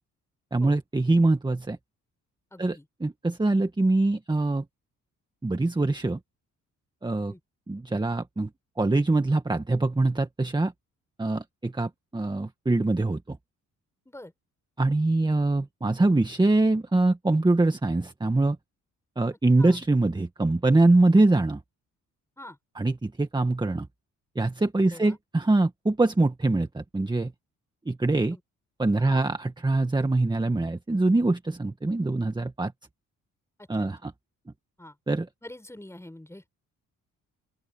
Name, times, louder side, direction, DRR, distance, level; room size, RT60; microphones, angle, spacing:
voice 1, 0.5-1.8 2.6-4.6 5.4-6.2 7.0-7.3 7.7-8.5 8.8-10.7 11.2-13.4 14.8-18.6 19.2-21.6 22.8-23.9 24.4-27.3 27.9-28.4 28.8-32.7 33.7-34.1 35.1-35.3, right 2 dB, 15° right, 1.8 m, -24 dB
voice 2, 2.5-2.9 7.3-7.4 14.1-14.3 19.6-19.8 22.4-22.6 24.8-25.2 28.3-28.4 29.0-29.2 33.8-34.1 34.8-35.0 35.4-36.5, left 1 dB, 10° left, 7.2 m, -45 dB
open air
cardioid pair, 95°, 31 cm